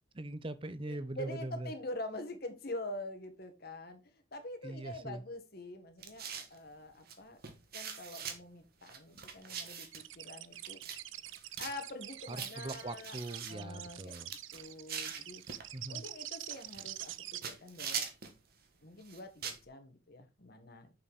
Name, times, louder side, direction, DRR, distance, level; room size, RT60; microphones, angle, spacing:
voice 1, 0.1-1.7 4.6-5.2 12.3-14.3 15.7-16.0, right 1 dB, 25° right, 0.7 m, -41 dB
voice 2, 0.9-7.4 7.7-10.8 11.6-13.2 13.5-14.2 14.5-15.4 15.9-18.1 18.8-20.9, left 1 dB, 50° left, 1.5 m, -45 dB
sound 1, 6.0-6.6 7.1-7.2 7.4-8.4 8.8-10.1 10.6-11.0 11.2-11.7 12.3-13.5 14.0-15.7 16.5-17.2 17.4-18.4 19.0-19.6, right 7 dB, 50° right, 1.4 m, -42 dB
sound 2, 9.9-17.4, right 14 dB, 70° right, 0.5 m, -46 dB
7.1 x 5.7 x 4.9 m
head